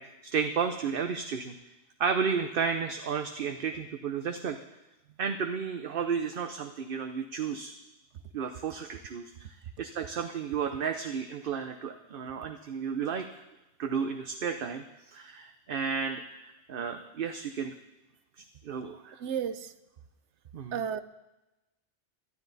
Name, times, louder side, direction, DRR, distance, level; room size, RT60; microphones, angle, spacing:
voice 1, 0.0-1.5 2.0-4.6 5.2-7.7 8.3-9.5 9.8-13.3 13.8-17.7 18.4-19.2 20.5-20.7, right 6 dB, 55° right, 7 dB, 0.9 m, -33 dB
voice 2, 19.2-19.7 20.7-21.0, right 8 dB, 80° right, 13 dB, 1.0 m, -32 dB
20.0 x 12.0 x 4.0 m, 1.0 s
omnidirectional pair, 1.2 m